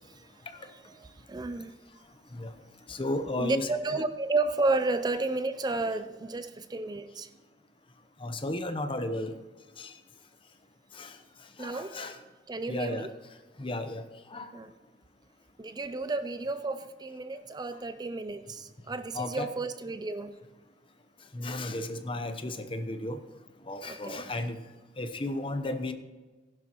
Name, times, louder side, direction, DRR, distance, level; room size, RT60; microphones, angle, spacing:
voice 1, 0.5-1.8 3.4-7.3 11.6-12.0 12.5-13.1 14.5-14.7 15.6-20.3 23.8-24.3, right 3 dB, 25° right, 11 dB, 0.4 m, -32 dB
voice 2, 2.9-3.7 8.2-9.3 9.8-9.9 10.9-11.1 11.6-12.2 12.7-13.1 13.6-14.0 14.3-14.5 19.1-19.5 21.3-23.2 23.7-24.6 25.0-25.9, left 1 dB, 30° left, 8 dB, 0.9 m, -34 dB
15.5 x 11.0 x 3.0 m, 1.3 s
head